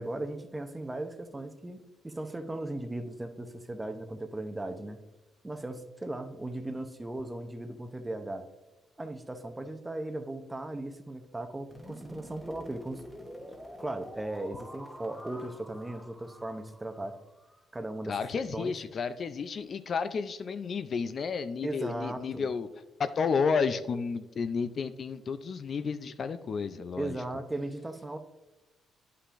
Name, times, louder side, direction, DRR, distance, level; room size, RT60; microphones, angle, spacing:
voice 1, 0.0-5.0 5.4-8.4 9.0-13.0 13.4-17.2 17.7-18.7 21.6-22.5 27.0-28.2, right 2 dB, 15° right, 8 dB, 0.6 m, -37 dB
sound 1, 11.7-17.6, equal, 5° left, 1.0 m, -48 dB
voice 2, 18.1-22.7 23.0-27.2, left 5 dB, 50° left, 11 dB, 0.4 m, -31 dB
9.7 x 5.6 x 2.5 m, 1.0 s
cardioid pair, 90°, 0 cm